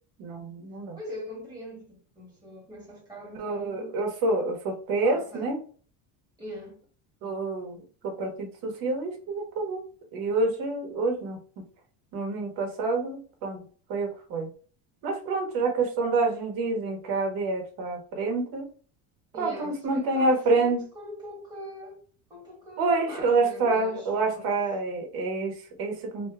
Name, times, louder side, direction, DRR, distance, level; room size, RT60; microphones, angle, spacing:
voice 1, 0.2-1.0 3.4-5.6 7.2-9.8 10.1-11.4 12.1-13.6 13.9-14.5 15.0-18.6 19.4-20.8 22.8-26.3, right 3 dB, 50° right, 1.0 m, -27 dB
voice 2, 0.9-4.0 5.0-5.5 6.4-6.8 19.3-22.0 22.3-24.6, equal, 10° right, 1.1 m, -42 dB
2.8 x 2.2 x 3.3 m
cardioid pair, 165°, 44 cm